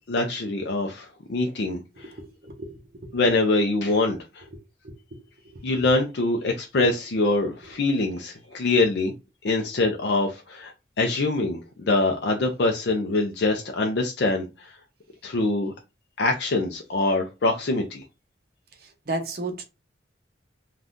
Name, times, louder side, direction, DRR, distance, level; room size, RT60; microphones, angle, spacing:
voice 1, 0.1-2.1 3.1-4.4 5.6-9.1 9.4-14.7 15.2-15.7 16.2-18.0, left 2 dB, 60° left, 0.4 m, -24 dB
voice 2, 2.0-3.2 4.5-4.9 5.5-5.6 19.1-19.6, right 2 dB, 50° right, 0.7 m, -34 dB
3.5 x 2.3 x 2.5 m
head